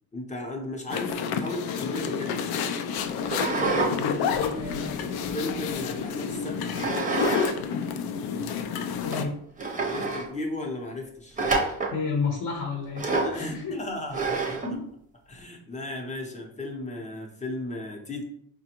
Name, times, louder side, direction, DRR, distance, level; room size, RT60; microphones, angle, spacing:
voice 1, 0.1-2.4 5.3-6.8 9.1-9.3 9.8-11.4 13.2-14.6 15.3-18.2, left 2 dB, 20° left, 1 dB, 0.7 m, -35 dB
sound 1, 0.9-9.2, left 6 dB, 70° left, 0.5 m, -30 dB
sound 2, 3.3-3.9 4.3-5.7 6.7-7.5 7.8-7.9 8.6-8.7 9.1-9.2 9.6-10.3 11.4-12.0 13.0-13.4 14.1-14.7, right 3 dB, 20° right, 0.6 m, -27 dB
voice 2, 3.6-5.0 9.0-9.4 11.9-13.1 13.3-13.8 14.6-14.9, left 4 dB, 55° left, 0 dB, 0.8 m, -32 dB
4.9 x 2.2 x 2.9 m, 0.72 s
cardioid pair, 130°, 38 cm